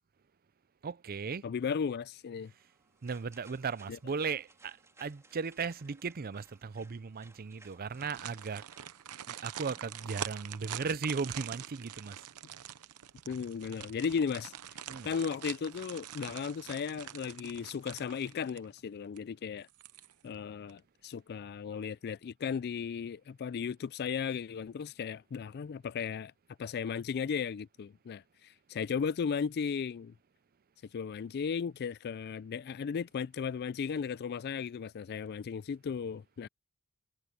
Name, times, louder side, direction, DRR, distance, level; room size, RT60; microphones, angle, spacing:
voice 1, 0.8-1.4 3.0-8.6 9.3-12.2 14.9-15.1, right 5 dB, 40° right, 0.5 m, -37 dB
voice 2, 1.4-2.5 3.9-4.0 13.3-14.5 15.0-19.7 20.2-26.3 26.6-30.1 30.9-36.5, left 6 dB, 45° left, 0.3 m, -35 dB
sound 1, 2.4-10.0, right 2 dB, 15° right, 3.1 m, -62 dB
sound 2, 7.9-18.8 19.2-19.3 19.7-20.3 20.7-20.8, right 10 dB, 90° right, 0.8 m, -45 dB
head